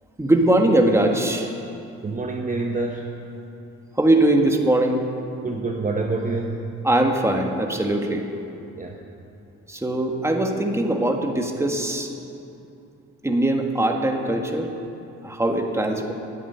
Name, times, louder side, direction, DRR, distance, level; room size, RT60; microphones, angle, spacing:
voice 1, 0.2-1.5 4.0-5.0 6.8-8.3 9.7-12.1 13.2-14.7 15.2-16.1, right 1 dB, 10° right, 3 dB, 1.5 m, -21 dB
voice 2, 2.0-3.1 5.4-6.7 8.7-9.0, right 3 dB, 25° right, 1 dB, 1.1 m, -27 dB
10.5 x 8.5 x 9.9 m, 2.7 s
cardioid pair, 90°, 30 cm